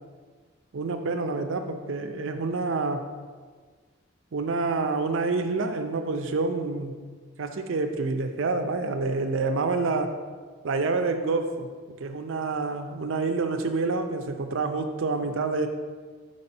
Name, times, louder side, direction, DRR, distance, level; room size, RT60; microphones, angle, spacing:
voice 1, 0.7-3.1 4.3-7.0 7.4-10.2 10.6-11.7 12.0-15.7, right 3 dB, 70° right, 6 dB, 0.5 m, -27 dB
5.3 x 4.2 x 5.4 m, 1.5 s
head